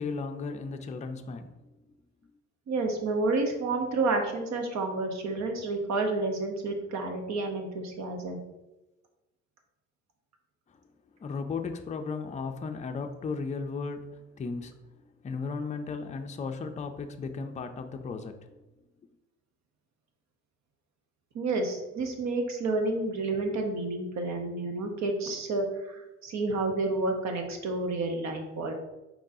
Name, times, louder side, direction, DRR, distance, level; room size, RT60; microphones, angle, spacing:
voice 1, 0.0-1.5 10.7-10.8 11.2-14.7 15.2-18.4, left 4 dB, 25° left, 6 dB, 0.4 m, -35 dB
voice 2, 2.7-8.4 21.3-28.7, right 3 dB, 65° right, 4 dB, 0.9 m, -30 dB
4.7 x 3.7 x 2.7 m, 1.0 s
cardioid pair, 90°, 30 cm